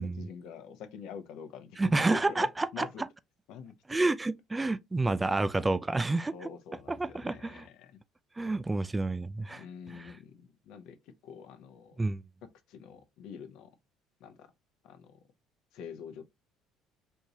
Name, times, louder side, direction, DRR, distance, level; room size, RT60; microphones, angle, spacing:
voice 1, 0.0-1.8 2.1-3.0 3.5-4.0 6.3-8.0 9.5-12.0 12.7-13.7 14.2-14.5 14.8-15.2 15.7-16.3, left 7 dB, 70° left, 0.7 m, -46 dB
voice 2, 1.8-2.9 3.9-6.3 6.9-7.7 8.4-9.6 9.9-10.1 12.0-12.2, right 2 dB, 20° right, 0.3 m, -29 dB
4.4 x 2.7 x 2.7 m
hypercardioid pair, 70°, 0 cm